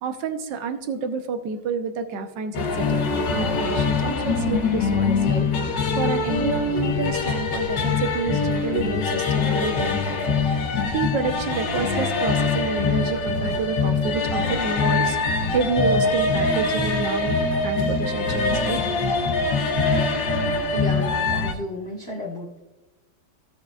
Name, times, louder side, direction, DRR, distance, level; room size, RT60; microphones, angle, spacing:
voice 1, 0.0-17.4 17.6-18.8, right 4 dB, 65° right, 7 dB, 1.5 m, -29 dB
sound 1, 2.5-21.5, left 4 dB, 65° left, 1.6 m, -23 dB
voice 2, 20.7-22.6, left 1 dB, 35° left, -3 dB, 1.4 m, -33 dB
15.5 x 6.3 x 2.4 m, 1.1 s
omnidirectional pair, 2.2 m